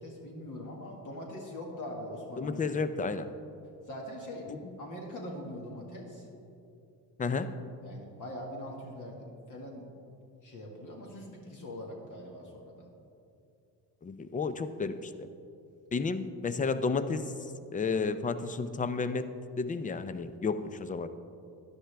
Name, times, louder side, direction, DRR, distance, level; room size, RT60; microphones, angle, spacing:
voice 1, 0.0-2.6 3.9-6.3 7.8-9.9 10.4-12.8, left 1 dB, 50° left, -1 dB, 1.9 m, -42 dB
voice 2, 2.4-3.3 4.5-4.8 7.2-7.5 14.0-15.3 15.9-17.3 17.7-19.3 19.6-21.1, left 4 dB, 20° left, 12 dB, 0.5 m, -32 dB
12.5 x 10.5 x 3.4 m, 2.6 s
cardioid pair, 90°, 40 cm